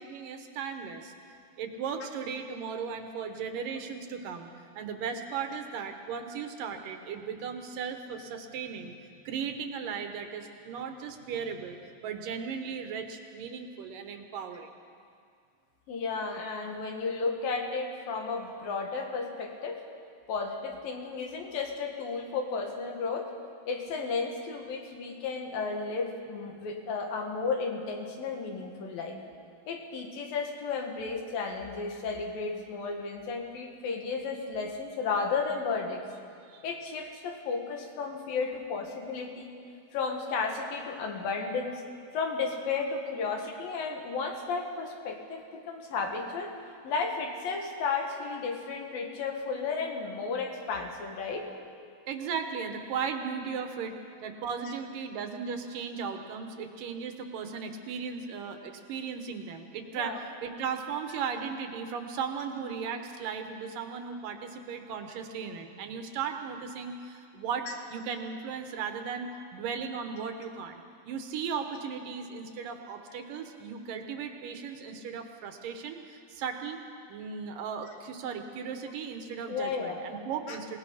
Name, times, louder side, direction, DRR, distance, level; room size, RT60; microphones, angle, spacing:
voice 1, 0.0-8.9 9.3-14.7 36.5-36.6 52.1-54.0 54.2-76.8 77.1-80.8, right 6 dB, 70° right, 6 dB, 2.7 m, -36 dB
voice 2, 15.9-19.8 20.3-23.3 23.7-29.2 29.7-36.0 36.6-39.5 39.9-41.8 42.1-46.5 46.8-51.5 59.9-60.2 79.5-80.0 80.5-80.6, left 4 dB, 75° left, 2 dB, 3.6 m, -33 dB
26.0 x 18.0 x 5.7 m, 2.3 s
omnidirectional pair, 4.2 m